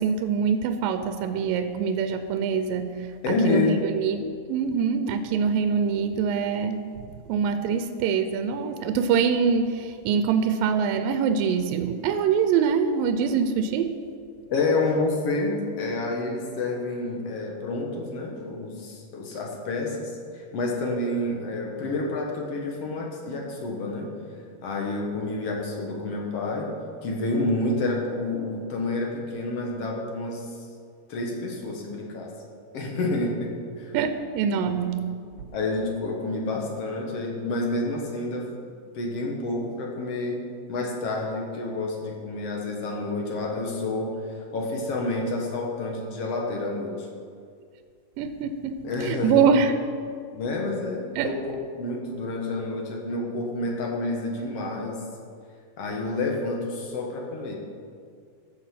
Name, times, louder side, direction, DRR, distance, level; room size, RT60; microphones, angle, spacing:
voice 1, 0.0-6.8 7.3-14.0 33.9-35.1 48.2-49.7 51.2-51.4, right 6 dB, 80° right, 9 dB, 2.2 m, -24 dB
voice 2, 3.2-3.9 14.5-24.1 24.6-26.7 27.0-30.5 31.1-32.3 32.7-33.5 33.8-33.9 35.5-38.5 38.9-40.4 40.7-44.1 44.5-47.1 48.8-49.4 50.3-55.0 55.8-57.6, left 2 dB, 55° left, 0 dB, 1.9 m, -29 dB
15.0 x 6.8 x 5.8 m, 2.2 s
omnidirectional pair, 4.3 m